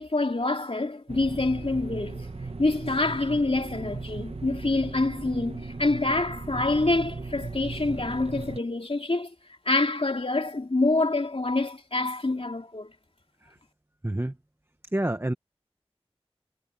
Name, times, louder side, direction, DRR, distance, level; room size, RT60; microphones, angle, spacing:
voice 1, 0.0-2.3 2.6-9.3 9.6-12.9, left 2 dB, 70° left, 2.7 m, -26 dB
sound 1, 1.1-8.6, right 3 dB, 80° right, 1.2 m, -37 dB
voice 2, 14.0-14.3 14.9-15.3, right 1 dB, 25° right, 1.2 m, -28 dB
wide cardioid pair, 40°, 10 cm